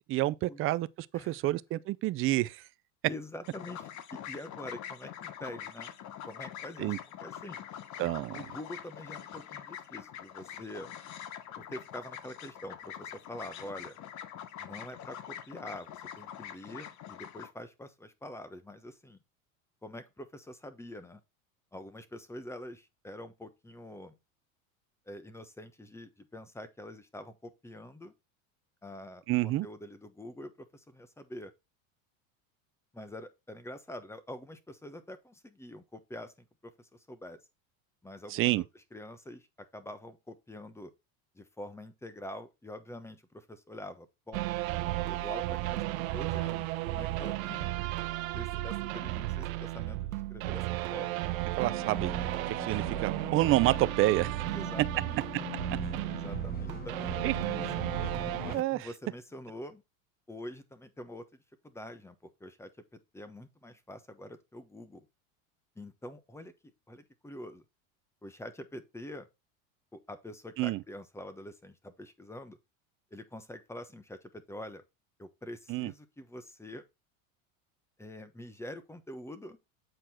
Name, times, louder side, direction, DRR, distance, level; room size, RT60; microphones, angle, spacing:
voice 1, 0.1-0.9 1.1-2.6 6.8-7.0 8.0-8.4 29.3-29.7 38.3-38.6 51.6-52.2 52.5-54.3 57.2-57.3 58.5-58.9 70.6-70.8 75.7-75.9, right 17 dB, 35° right, 0.4 m, -28 dB
voice 2, 1.1-1.5 3.1-3.9 4.3-5.9 6.3-6.9 7.2-7.6 8.3-10.9 11.6-14.0 14.6-19.2 19.8-21.2 21.7-24.1 25.1-28.1 28.8-31.5 32.9-36.5 36.8-37.4 38.0-39.4 39.7-40.9 41.3-44.5 45.1-47.8 48.3-51.3 54.5-55.2 56.1-57.7 58.4-59.8 60.3-61.3 61.6-65.0 65.8-66.5 66.9-67.6 68.2-69.3 69.9-72.6 73.1-74.8 75.2-76.8 78.0-79.6, left 1 dB, 5° left, 1.1 m, -45 dB
sound 1, 3.4-17.5, left 10 dB, 45° left, 1.0 m, -44 dB
sound 2, 44.3-58.6, right 16 dB, 80° right, 0.7 m, -34 dB
sound 3, 51.6-58.6, left 6 dB, 20° left, 1.7 m, -42 dB
7.8 x 4.5 x 4.3 m
supercardioid pair, 105°, 41 cm